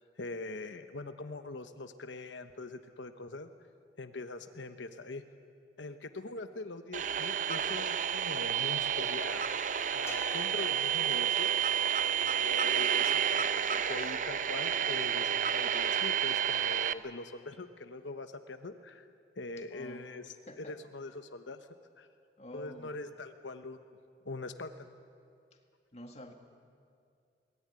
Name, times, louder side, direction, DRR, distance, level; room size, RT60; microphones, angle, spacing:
voice 1, 0.2-3.5 4.0-5.2 5.8-9.4 9.9-11.5 12.2-19.1 19.4-21.7 22.0-22.1 22.5-23.8 24.2-24.9, left 3 dB, 90° left, 8 dB, 1.0 m, -43 dB
sound 1, 6.9-16.9, right 9 dB, 45° right, 0.6 m, -30 dB
sound 2, 10.1-14.4, left 2 dB, 15° left, 1.7 m, -50 dB
voice 2, 19.7-20.1 20.5-20.8 22.4-23.0 25.9-26.3, left 1 dB, 35° left, 4 dB, 2.0 m, -48 dB
22.0 x 18.5 x 9.6 m, 2.3 s
head